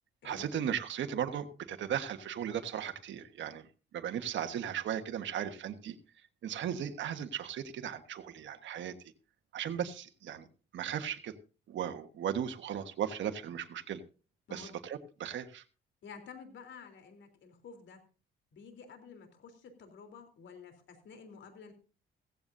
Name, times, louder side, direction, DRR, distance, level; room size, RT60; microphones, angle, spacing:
voice 1, 0.2-3.7 3.9-6.0 6.4-8.9 9.5-10.5 10.7-11.3 11.7-14.0 14.5-15.6, right 9 dB, 70° right, 7 dB, 1.4 m, -36 dB
voice 2, 16.0-18.0 18.5-21.7, left 5 dB, 70° left, 6 dB, 3.7 m, -51 dB
16.0 x 15.0 x 2.7 m, 0.35 s
cardioid pair, 90°, 20 cm